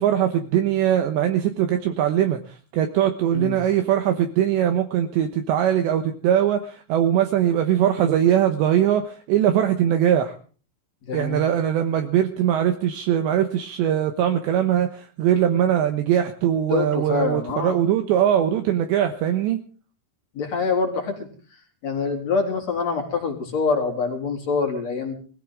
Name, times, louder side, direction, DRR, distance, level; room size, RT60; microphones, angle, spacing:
voice 1, 0.0-10.4 11.1-19.6, right 10 dB, 75° right, 6 dB, 3.0 m, -21 dB
voice 2, 11.1-11.4 16.7-17.8 20.3-21.3 21.8-25.1, left 4 dB, 35° left, 2 dB, 4.2 m, -25 dB
21.5 x 16.5 x 3.8 m, 0.40 s
omnidirectional pair, 5.9 m